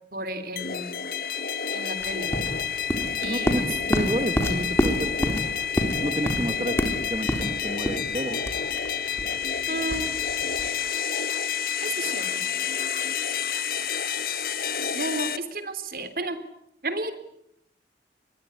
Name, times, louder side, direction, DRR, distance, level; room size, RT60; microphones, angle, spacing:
voice 1, 0.1-1.0 1.7-2.3 3.2-3.7 9.7-10.1 11.8-12.4 14.9-16.4 16.8-17.1, right 2 dB, 55° right, 11 dB, 3.3 m, -32 dB
sound 1, 0.6-15.4, left 7 dB, 55° left, 1.4 m, -29 dB
sound 2, 2.0-10.8, equal, 15° left, 3.8 m, -28 dB
voice 2, 3.2-3.6 3.9-5.4 6.0-8.4, right 1 dB, 30° right, 7 dB, 1.6 m, -30 dB
26.0 x 21.5 x 9.8 m, 0.77 s
head